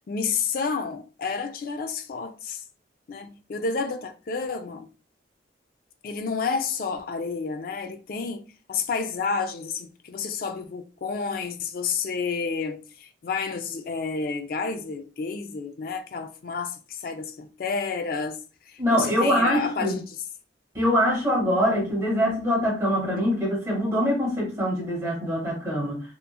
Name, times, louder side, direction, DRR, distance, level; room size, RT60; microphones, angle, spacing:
voice 1, 0.1-2.6 3.1-4.9 6.0-8.4 8.7-18.4 18.7-20.2 23.2-23.3, left 5 dB, 50° left, 0.3 m, -30 dB
voice 2, 18.8-19.9 20.7-26.0, equal, 15° right, 1.1 m, -24 dB
3.0 x 2.3 x 2.2 m
head